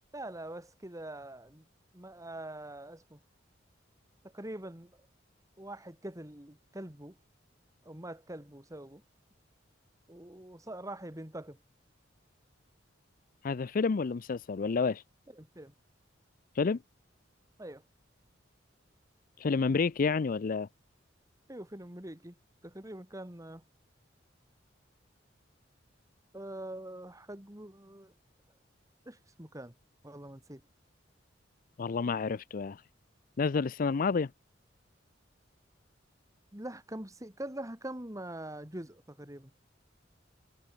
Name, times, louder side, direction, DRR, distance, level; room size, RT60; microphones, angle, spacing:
voice 1, 0.1-1.7 1.9-3.2 4.2-5.0 5.6-7.2 7.8-9.0 10.1-11.6 15.3-15.7 17.6-17.8 21.5-22.4 22.6-23.6 26.3-28.1 29.0-29.7 30.0-30.6 36.5-39.5, right 1 dB, 20° right, 2.8 m, -44 dB
voice 2, 13.4-15.0 16.6-16.8 19.4-20.7 31.8-32.8 33.4-34.3, left 4 dB, 45° left, 0.4 m, -29 dB
head